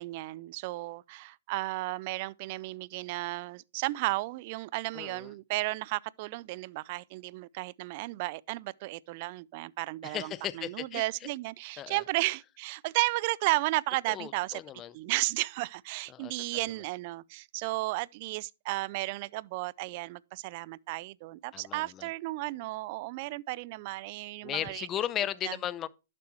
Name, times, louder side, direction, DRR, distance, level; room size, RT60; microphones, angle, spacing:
voice 1, 0.0-14.6 14.9-24.9 25.4-25.5, right 21 dB, 45° right, 0.4 m, -34 dB
voice 2, 4.9-5.3 10.0-11.3 11.8-12.0 14.1-15.0 16.1-16.7 21.5-22.1 24.4-25.9, left 11 dB, 25° left, 0.6 m, -36 dB
11.5 x 7.5 x 3.0 m
hypercardioid pair, 130°, 0 cm